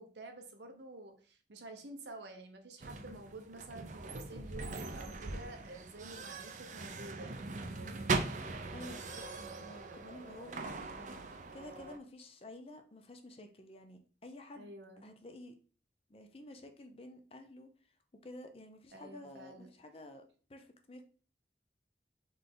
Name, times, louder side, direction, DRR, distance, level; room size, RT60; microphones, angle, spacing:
voice 1, 0.0-8.0 14.5-15.1 18.9-19.7, right 2 dB, 80° right, 5 dB, 0.8 m, -50 dB
sound 1, 2.8-12.0, right 3 dB, 45° right, 0.5 m, -40 dB
voice 2, 8.7-14.7 15.0-15.6 16.1-17.9 18.2-20.2 20.5-21.0, left 1 dB, 35° left, 6 dB, 0.5 m, -51 dB
4.0 x 3.3 x 3.8 m, 0.40 s
head